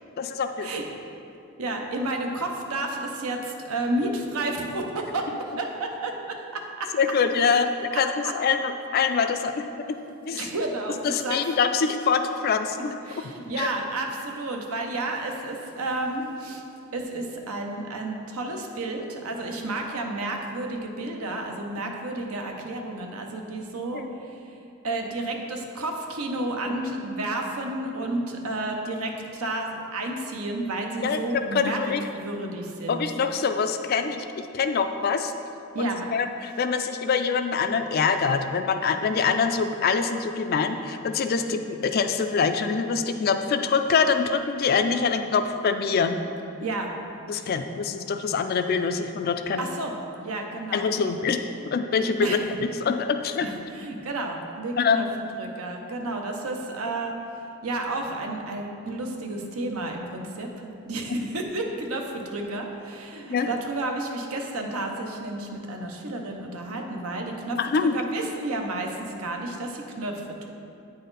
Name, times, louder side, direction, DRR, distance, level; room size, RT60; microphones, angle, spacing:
voice 1, 0.2-0.7 7.0-10.0 10.3-10.5 11.0-12.9 13.6-13.7 23.9-24.0 31.0-32.0 32.9-35.3 35.8-46.2 47.3-49.7 50.7-51.4 51.7-52.4 52.8-53.5 54.8-55.1 63.3-63.5 67.6-68.0, left 5 dB, 45° left, 8 dB, 0.3 m, -25 dB
voice 2, 1.6-6.9 7.9-8.0 10.3-11.4 13.1-16.6 16.9-24.4 24.8-31.8 32.1-33.0 35.7-36.1 41.4-41.6 46.6-46.9 49.6-49.9 50.2-51.1 52.2-52.6 53.4-55.1 55.4-57.2 57.6-70.2, right 2 dB, 75° right, 2 dB, 0.7 m, -31 dB
8.8 x 4.1 x 3.9 m, 2.6 s
head